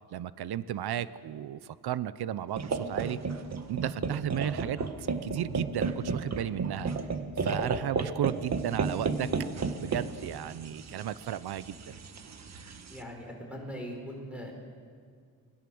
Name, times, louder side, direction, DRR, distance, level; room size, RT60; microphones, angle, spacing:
voice 1, 0.1-3.2 3.7-6.9 7.4-9.3 9.8-11.9, right 11 dB, 85° right, 16 dB, 0.8 m, -34 dB
sound 1, 2.6-13.0, right 4 dB, 45° right, 1.5 m, -33 dB
voice 2, 12.9-14.5, equal, 5° right, 0 dB, 5.2 m, -40 dB
28.0 x 21.0 x 7.8 m, 2.1 s
wide cardioid pair, 160°, 37 cm